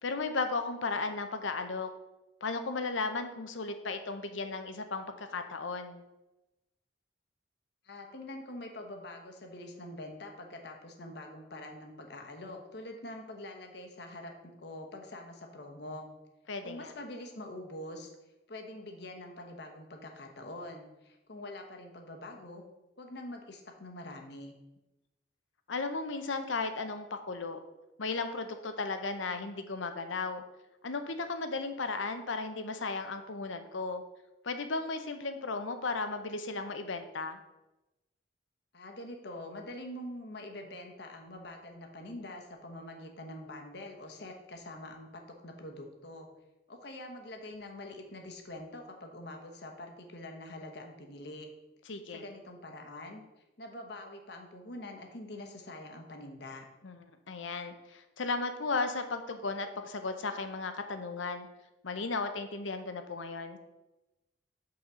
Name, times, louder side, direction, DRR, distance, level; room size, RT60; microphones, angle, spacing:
voice 1, 0.0-1.9 2.4-6.0 16.5-16.9 25.7-27.6 28.0-30.4 30.8-34.0 34.4-37.4 51.9-52.3 56.8-57.0 57.3-61.5 61.8-63.6, left 3 dB, 85° left, 8 dB, 0.8 m, -35 dB
voice 2, 7.8-16.1 16.6-18.1 18.5-22.6 23.0-24.5 38.7-46.3 46.7-51.5 52.1-53.2 53.6-56.7, left 1 dB, 60° left, 3 dB, 1.1 m, -45 dB
5.7 x 4.2 x 6.2 m, 1.0 s
head